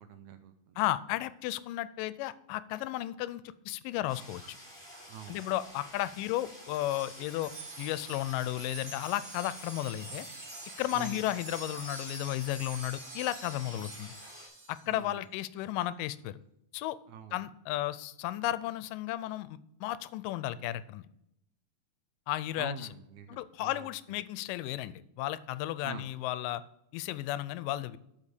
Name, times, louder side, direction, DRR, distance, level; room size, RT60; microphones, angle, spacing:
voice 1, 0.0-0.8 5.1-5.4 10.9-11.2 14.9-15.2 17.1-17.4 22.6-23.9 25.8-26.1, right 6 dB, 75° right, 9 dB, 1.9 m, -45 dB
voice 2, 0.8-4.6 5.3-7.5 7.8-10.3 10.8-14.1 14.7-16.4 16.7-17.0 17.3-21.1 22.3-22.9 23.3-26.6 26.9-28.0, left 14 dB, 90° left, 16 dB, 2.2 m, -34 dB
sound 1, 4.1-14.5, equal, 5° left, 3.2 m, -50 dB
Wind chime, 6.7-14.9, right 2 dB, 55° right, 3.2 m, -46 dB
8.2 x 5.3 x 6.8 m, 0.78 s
omnidirectional pair, 3.8 m